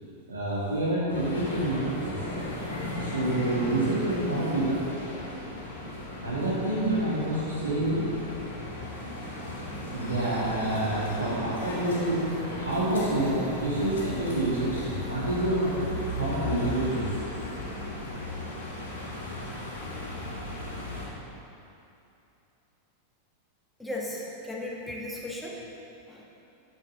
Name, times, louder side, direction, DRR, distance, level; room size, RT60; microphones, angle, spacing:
voice 1, 0.3-2.2 3.0-4.7 6.2-8.1 9.9-12.3 12.6-15.8 16.2-17.1, right 1 dB, 80° right, -8 dB, 2.0 m, -28 dB
sound 1, 1.1-21.1, left 1 dB, 70° left, 1.7 m, -36 dB
voice 2, 23.8-25.7 26.1-26.3, left 1 dB, 5° left, -4 dB, 1.3 m, -36 dB
9.2 x 6.5 x 3.8 m, 2.8 s
figure-of-eight pair, 90°, 0 cm